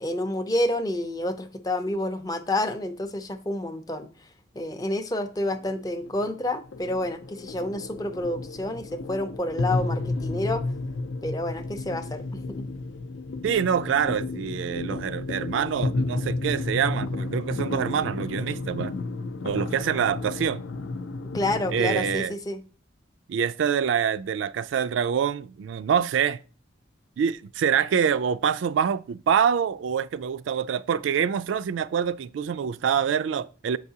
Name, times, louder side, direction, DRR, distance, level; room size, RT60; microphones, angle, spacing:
voice 1, 0.0-4.1 4.5-10.6 11.2-12.7 21.3-22.6, left 1 dB, 20° left, 0.4 m, -29 dB
sound 1, 5.4-22.2, left 3 dB, 85° left, 0.5 m, -32 dB
voice 2, 13.4-18.9 19.4-20.6 21.7-22.3 23.3-26.4 27.2-33.8, right 7 dB, 75° right, 0.3 m, -25 dB
7.7 x 4.7 x 2.8 m
head